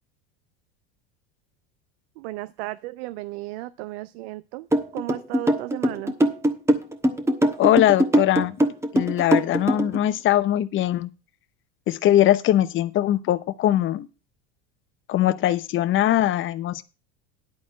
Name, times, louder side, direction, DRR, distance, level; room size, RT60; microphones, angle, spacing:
voice 1, 2.2-4.7 4.9-6.1, right 18 dB, 75° right, 0.6 m, -34 dB
sound 1, 4.7-10.0, right 1 dB, 10° right, 1.2 m, -21 dB
voice 2, 7.6-8.6 8.9-11.1 11.9-14.1 15.1-16.8, left 13 dB, 40° left, 0.8 m, -21 dB
11.0 x 4.2 x 7.4 m
supercardioid pair, 110°, 32 cm